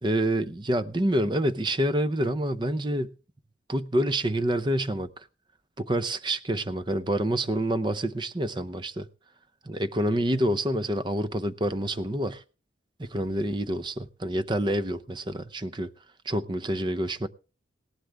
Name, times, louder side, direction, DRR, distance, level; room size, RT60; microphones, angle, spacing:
voice 1, 0.0-3.1 3.7-5.3 5.8-9.1 9.7-12.4 13.0-15.9 16.3-17.3, right 1 dB, 25° right, 0.7 m, -27 dB
17.5 x 11.5 x 3.5 m
head